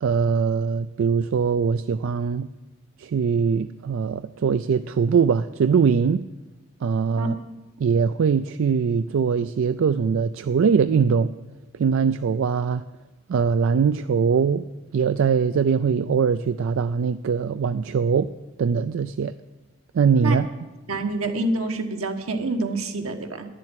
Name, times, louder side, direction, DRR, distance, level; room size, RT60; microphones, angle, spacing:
voice 1, 0.0-2.5 3.0-6.2 6.8-7.3 7.8-11.3 11.8-12.8 13.3-14.6 14.9-18.3 18.6-19.3 19.9-20.5, right 6 dB, 70° right, 0.3 m, -22 dB
voice 2, 20.9-23.5, right 2 dB, 90° right, 1.4 m, -27 dB
11.0 x 7.5 x 9.7 m
head